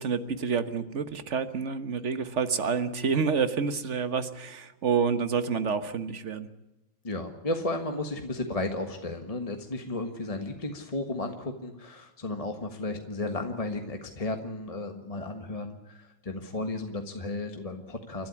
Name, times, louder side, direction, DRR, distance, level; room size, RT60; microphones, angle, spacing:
voice 1, 0.0-6.5, right 5 dB, 40° right, 11 dB, 1.3 m, -28 dB
voice 2, 7.0-18.3, left 2 dB, 20° left, 4 dB, 1.4 m, -34 dB
30.0 x 12.5 x 9.8 m, 0.93 s
omnidirectional pair, 2.2 m